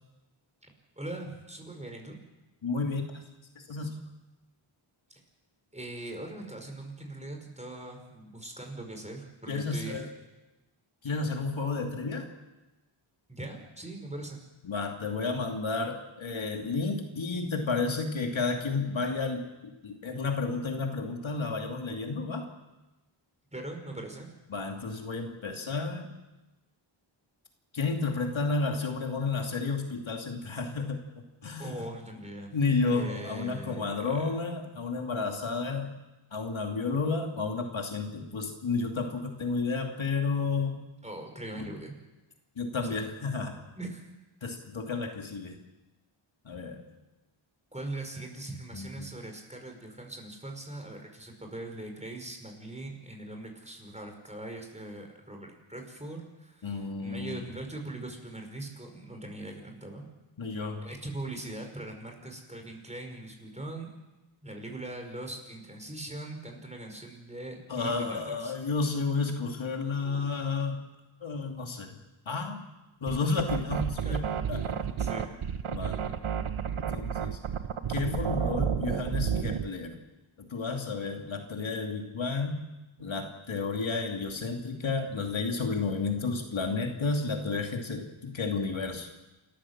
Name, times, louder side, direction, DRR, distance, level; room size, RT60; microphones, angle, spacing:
voice 1, 1.0-2.2 5.7-10.1 13.3-14.4 23.5-24.3 31.6-32.6 32.9-34.4 41.0-41.9 42.8-43.0 43.8-44.0 47.7-60.0 60.8-63.9 64.4-68.5 70.0-70.3 74.0-74.2 75.0-75.3 78.8-79.2, right 2 dB, 15° right, 3 dB, 5.1 m, -41 dB
voice 2, 2.6-3.2 3.6-4.0 9.5-10.1 11.0-12.3 14.6-22.5 24.5-26.1 27.7-31.8 32.5-35.9 36.3-40.8 41.6-41.7 42.6-43.6 44.4-45.6 46.4-46.8 48.7-49.1 56.6-57.5 60.4-60.9 67.7-70.8 71.2-72.0 72.3-72.7 73.0-74.9 75.7-76.0 76.6-77.4 77.9-80.0 80.4-82.6 83.0-89.1, left 4 dB, 65° left, 2 dB, 2.7 m, -32 dB
sound 1, 73.1-79.7, right 8 dB, 75° right, 1.3 m, -31 dB
28.5 x 14.0 x 7.4 m, 1.1 s
wide cardioid pair, 80°, 49 cm